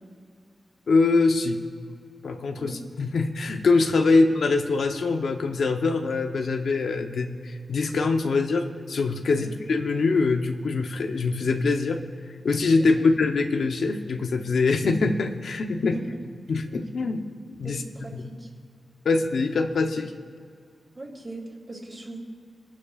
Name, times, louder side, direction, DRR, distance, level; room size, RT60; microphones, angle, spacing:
voice 1, 0.9-1.6 2.2-12.0 12.4-16.0 16.5-17.2 17.5-17.8 18.1-18.2 19.0-20.1, left 3 dB, 80° left, 5 dB, 0.8 m, -23 dB
voice 2, 17.6-18.5 20.9-22.2, right 2 dB, 25° right, -2 dB, 3.0 m, -40 dB
26.0 x 11.5 x 2.5 m, 2.2 s
wide cardioid pair, 175°, 0 cm